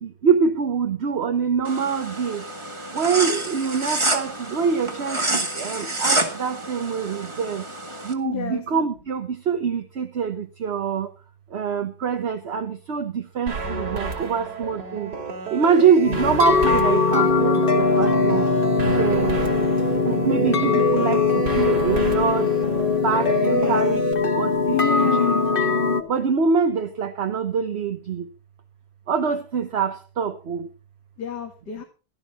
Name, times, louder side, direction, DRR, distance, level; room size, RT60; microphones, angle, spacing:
voice 1, 0.0-2.4 2.9-7.6 8.0-11.1 11.5-15.1 15.5-18.5 18.8-19.4 20.0-22.5 23.0-25.1 26.1-28.3 29.1-30.7, right 6 dB, 45° right, 1.0 m, -24 dB
sound 1, 1.7-8.1, right 2 dB, 20° right, 1.5 m, -28 dB
voice 2, 8.2-8.6 23.5-23.8 24.7-25.5 31.2-31.8, left 11 dB, 70° left, 2.3 m, -29 dB
sound 2, 13.5-24.1, right 5 dB, 65° right, 3.2 m, -31 dB
sound 3, 16.1-26.0, left 4 dB, 35° left, 1.3 m, -21 dB
16.0 x 12.5 x 4.1 m
omnidirectional pair, 1.9 m